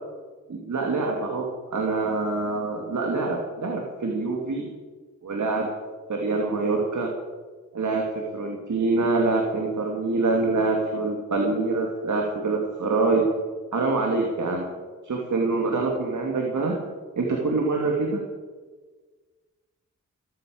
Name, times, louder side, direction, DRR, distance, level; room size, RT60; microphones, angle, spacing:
voice 1, 0.5-4.7 5.2-5.7 6.1-7.1 7.7-13.3 13.7-14.7 15.0-16.8 17.2-18.2, right 3 dB, 65° right, 0 dB, 2.9 m, -25 dB
18.0 x 9.1 x 8.0 m, 1.4 s
cardioid pair, 40°, 32 cm